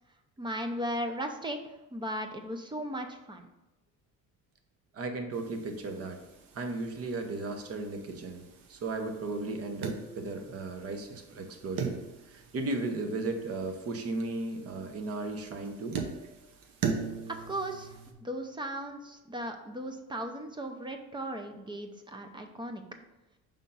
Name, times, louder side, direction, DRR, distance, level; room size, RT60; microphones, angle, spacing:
voice 1, 0.4-1.6 1.9-3.5 17.3-17.9 18.2-22.8, right 1 dB, 15° right, 5 dB, 0.5 m, -36 dB
voice 2, 4.9-6.2 6.5-8.4 8.7-12.0 12.3-16.0, right 2 dB, 45° right, 5 dB, 0.9 m, -35 dB
sound 1, 5.3-18.1, right 6 dB, 80° right, 0.9 m, -41 dB
5.6 x 3.6 x 5.4 m, 1.0 s
cardioid pair, 130°, 33 cm